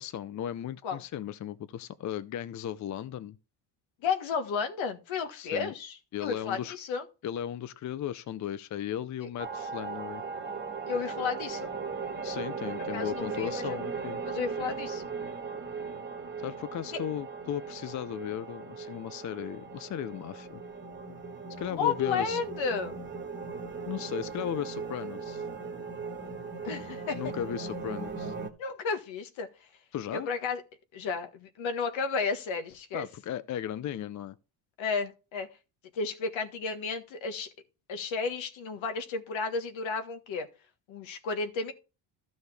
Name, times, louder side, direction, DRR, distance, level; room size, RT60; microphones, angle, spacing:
voice 1, 0.0-3.4 5.3-5.7 6.1-6.8 7.2-10.2 12.2-14.2 16.4-20.6 21.6-22.4 23.9-25.4 27.1-28.3 29.9-30.3 32.9-34.3, left 10 dB, 40° left, 0.5 m, -36 dB
voice 2, 4.0-7.0 10.9-11.7 12.9-13.8 14.2-15.0 21.7-23.0 26.6-27.3 28.6-29.5 30.1-30.6 30.9-33.1 34.8-35.5 35.9-37.5 37.9-40.5 40.9-41.7, left 5 dB, 70° left, 1.7 m, -32 dB
sound 1, 9.4-28.5, right 4 dB, 20° right, 1.5 m, -38 dB
13.0 x 6.3 x 3.4 m
cardioid pair, 120°, 49 cm